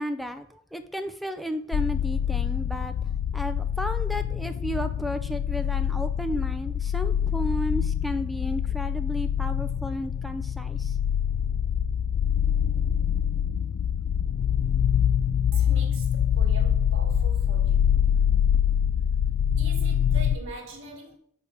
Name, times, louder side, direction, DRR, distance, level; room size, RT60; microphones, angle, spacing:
voice 1, 0.0-3.0 3.3-11.0 18.6-18.7, equal, ahead, 0.4 m, -33 dB
sound 1, 1.7-20.4, left 8 dB, 80° left, 0.4 m, -25 dB
voice 2, 15.5-18.0 19.6-21.2, right 2 dB, 60° right, 1.8 m, -43 dB
5.3 x 4.7 x 6.3 m
head